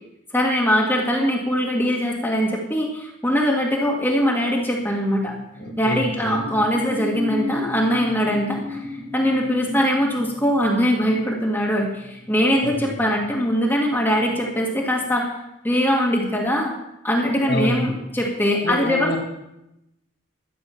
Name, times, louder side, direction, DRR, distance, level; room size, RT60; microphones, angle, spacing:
voice 1, 0.3-5.3 5.8-15.2 15.6-16.7 17.0-19.2, equal, 10° left, -2 dB, 1.9 m, -22 dB
sound 1, 4.7-13.7 14.0-14.3, left 1 dB, 40° right, 2.6 m, -35 dB
voice 2, 5.6-6.4 12.6-12.9 17.5-18.0 18.6-19.2, left 1 dB, 55° left, 2 dB, 2.0 m, -27 dB
13.0 x 9.5 x 5.7 m, 0.88 s
head